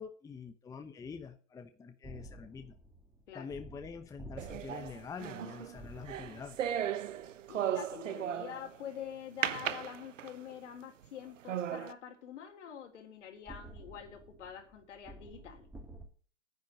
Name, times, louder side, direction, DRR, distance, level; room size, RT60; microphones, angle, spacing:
voice 1, 0.0-2.8 3.3-6.6, left 6 dB, 10° left, 7 dB, 0.9 m, -46 dB
sound 1, 2.0-7.6 13.5-16.1, right 1 dB, 5° right, 1.9 m, -52 dB
sound 2, 4.4-8.8 9.4-10.5 11.0-11.1 11.5-11.9, right 10 dB, 80° right, 1.1 m, -36 dB
voice 2, 7.5-15.7, left 8 dB, 70° left, 5 dB, 3.6 m, -46 dB
9.9 x 9.3 x 6.4 m, 0.42 s
hypercardioid pair, 130°, 37 cm